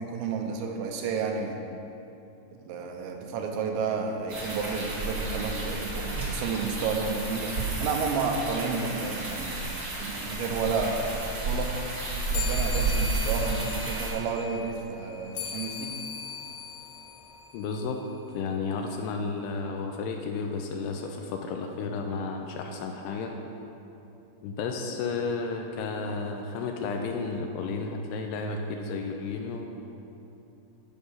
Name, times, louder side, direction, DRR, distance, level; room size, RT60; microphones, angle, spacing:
voice 1, 0.0-1.6 2.5-9.6 10.0-11.7 12.3-15.9, right 5 dB, 90° right, 2 dB, 3.3 m, -31 dB
sound 1, 4.3-14.1, right 3 dB, 45° right, 1.4 m, -31 dB
sound 2, 12.3-18.1, left 5 dB, 60° left, 2.4 m, -39 dB
voice 2, 17.5-18.0 18.3-23.3 24.4-29.7, left 4 dB, 85° left, 3 dB, 2.5 m, -32 dB
11.0 x 5.4 x 6.4 m, 2.8 s
omnidirectional pair, 5.1 m